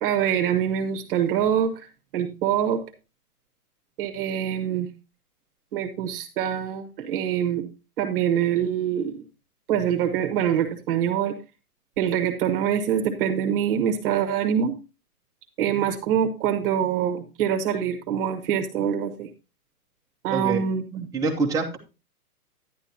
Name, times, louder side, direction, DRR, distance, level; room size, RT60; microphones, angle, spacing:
voice 1, 0.0-1.7 2.1-2.8 4.0-4.9 5.7-7.6 8.0-9.2 9.7-11.3 12.0-14.7 15.6-19.3 20.2-21.1, right 9 dB, 35° right, 1.4 m, -24 dB
voice 2, 20.3-20.6 21.1-21.8, right 4 dB, 5° right, 1.1 m, -25 dB
10.5 x 10.5 x 2.8 m
hypercardioid pair, 155°, 46 cm